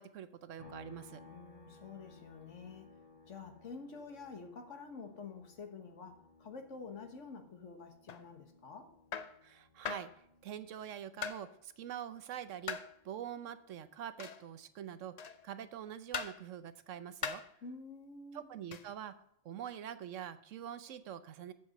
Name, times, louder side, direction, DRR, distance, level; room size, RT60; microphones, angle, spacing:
voice 1, 0.0-1.2 9.4-12.8 13.0-17.4 18.3-19.1 19.4-21.5, right 10 dB, 80° right, 12 dB, 1.1 m, -45 dB
sound 1, 0.6-14.1 14.5-16.7, left 3 dB, 30° right, 4.0 m, -62 dB
voice 2, 1.2-2.9 3.3-8.9 17.6-18.5, left 4 dB, 75° left, 5 dB, 1.7 m, -49 dB
sound 2, 8.1-8.3 9.1-9.4 9.8-10.1 11.2-11.5 12.7-12.9 14.2-14.5 15.2-15.5 16.1-16.4 17.2-17.5 18.7-18.9, left 7 dB, 55° left, 0.4 m, -40 dB
7.7 x 7.0 x 6.5 m, 0.74 s
omnidirectional pair, 1.3 m